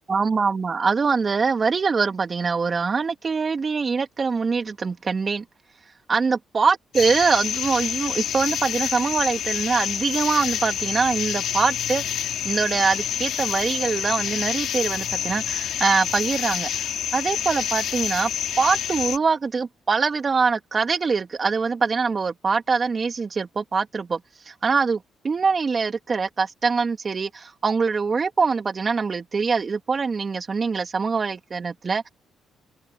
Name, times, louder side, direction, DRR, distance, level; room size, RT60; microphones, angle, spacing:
voice 1, 0.1-5.4 6.1-12.0 12.4-18.3 18.6-24.2 24.5-32.1, right 5 dB, 35° right, 3.0 m, -23 dB
sound 1, 6.9-19.2, left 10 dB, 70° left, 3.9 m, -28 dB
open air
cardioid pair, 95°, 0 cm